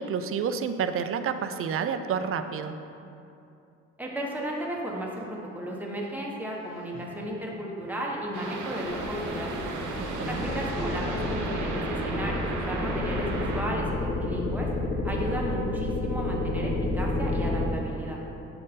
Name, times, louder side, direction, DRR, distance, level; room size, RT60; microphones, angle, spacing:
voice 1, 0.0-2.8 10.2-10.5, right 6 dB, 45° right, 9 dB, 0.4 m, -29 dB
voice 2, 4.0-9.5 10.3-14.7 15.0-18.2, right 1 dB, 5° right, -3 dB, 1.1 m, -34 dB
Laughter, 6.5-12.2 13.5-14.1, left 3 dB, 60° left, 0.9 m, -46 dB
sound 1, 8.3-13.6, right 2 dB, 75° right, 0.9 m, -34 dB
sound 2, 8.8-17.7, left 2 dB, 45° left, 1.1 m, -30 dB
7.8 x 4.0 x 3.7 m, 2.7 s
cardioid pair, 90°, 30 cm